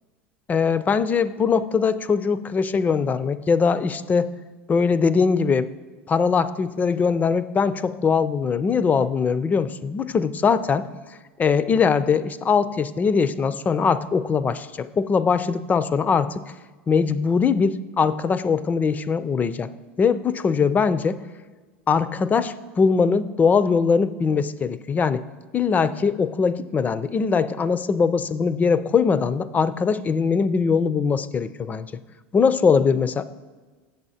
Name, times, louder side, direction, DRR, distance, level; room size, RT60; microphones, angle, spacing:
voice 1, 0.5-4.3 4.7-5.7 6.1-10.9 11.4-16.3 16.9-19.7 20.0-21.2 21.9-25.2 25.5-31.9 32.3-33.2, left 5 dB, 25° left, 15 dB, 0.4 m, -21 dB
8.0 x 7.0 x 4.1 m, 1.3 s
hypercardioid pair, 90°, 6 cm